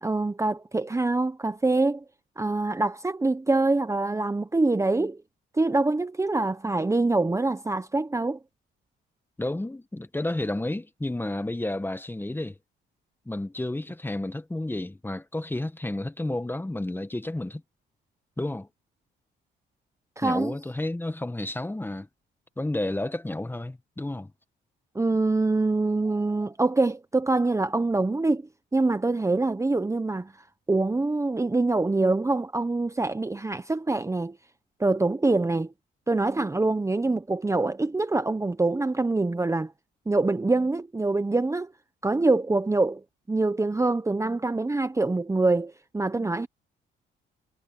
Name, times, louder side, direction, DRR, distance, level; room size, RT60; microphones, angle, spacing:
voice 1, 0.0-2.0 2.4-5.2 5.5-8.4 20.2-20.5 24.9-28.4 28.7-30.3 30.7-34.4 34.8-35.7 36.1-39.7 40.1-41.7 42.0-46.5, right 2 dB, 15° right, 1.0 m, -25 dB
voice 2, 9.4-12.6 13.2-17.6 18.4-18.7 20.2-22.1 22.6-24.3, left 1 dB, 10° left, 1.3 m, -31 dB
cardioid pair, 90°, 20 cm